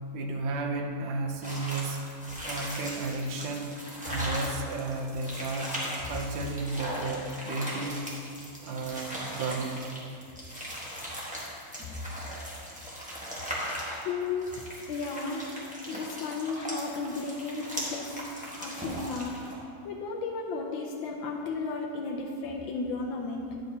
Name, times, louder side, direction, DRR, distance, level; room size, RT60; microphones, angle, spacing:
voice 1, 0.1-2.1 2.4-3.7 4.1-8.0 8.6-9.9, right 3 dB, 80° right, 3 dB, 1.4 m, -33 dB
sound 1, 1.4-19.5, equal, 5° right, 1.0 m, -38 dB
voice 2, 14.0-15.5 15.9-18.2 18.6-19.4 19.8-23.5, left 4 dB, 85° left, -1 dB, 1.4 m, -34 dB
10.0 x 7.0 x 2.8 m, 2.4 s
omnidirectional pair, 2.0 m